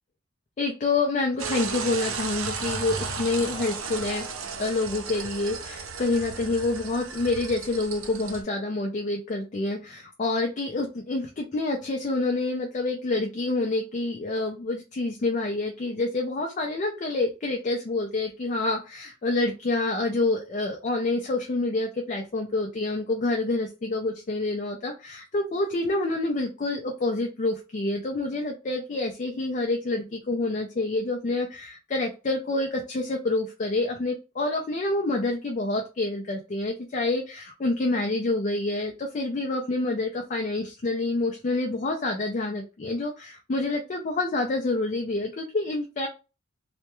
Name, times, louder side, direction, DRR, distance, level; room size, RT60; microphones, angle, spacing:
voice 1, 0.6-4.2 4.6-46.1, left 2 dB, 40° left, 2 dB, 0.4 m, -27 dB
sound 1, 1.4-8.4, right 5 dB, 90° right, 0.5 m, -34 dB
2.2 x 2.1 x 2.9 m, 0.31 s
head